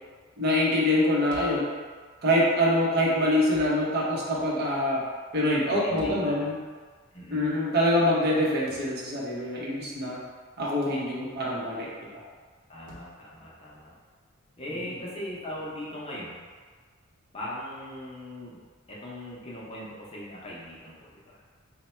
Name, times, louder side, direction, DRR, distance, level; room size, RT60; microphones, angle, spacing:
voice 1, 0.4-1.7 2.2-5.0 5.3-6.6 7.3-10.2 10.6-12.2, left 1 dB, 50° right, -5 dB, 0.8 m, -25 dB
sound 1, 1.3-1.7 3.5-3.8 6.0-6.3 8.7-8.9 10.8-11.1 12.9-13.1, left 1 dB, 80° right, 0.6 m, -46 dB
voice 2, 5.7-6.5 7.1-7.5 12.7-13.9 14.6-16.4 17.3-18.6 18.9-21.4, left 1 dB, 30° left, -6 dB, 0.6 m, -39 dB
3.2 x 2.1 x 4.2 m, 1.6 s
head